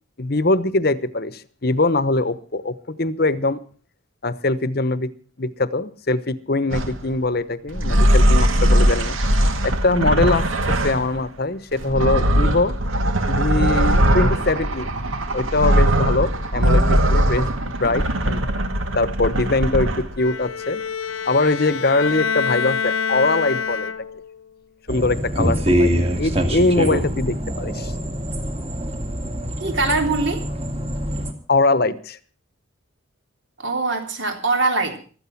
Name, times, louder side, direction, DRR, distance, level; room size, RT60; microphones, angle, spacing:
voice 1, 0.2-3.6 4.2-5.1 5.4-9.2 9.6-12.7 13.3-14.9 15.3-18.4 18.9-20.8 21.2-23.9 24.9-25.9 26.2-27.9 31.5-32.2, left 2 dB, 50° left, 1.0 m, -22 dB
sound 1, 6.7-7.0 7.7-11.2 11.7-20.2, right 1 dB, 80° right, 2.0 m, -19 dB
Bowed string instrument, 20.2-24.3, left 6 dB, 85° left, 1.2 m, -26 dB
sound 2, 24.9-31.3, equal, 30° right, 2.3 m, -24 dB
voice 2, 29.6-30.4 33.6-35.0, right 3 dB, 60° right, 3.5 m, -22 dB
15.5 x 13.0 x 5.9 m
head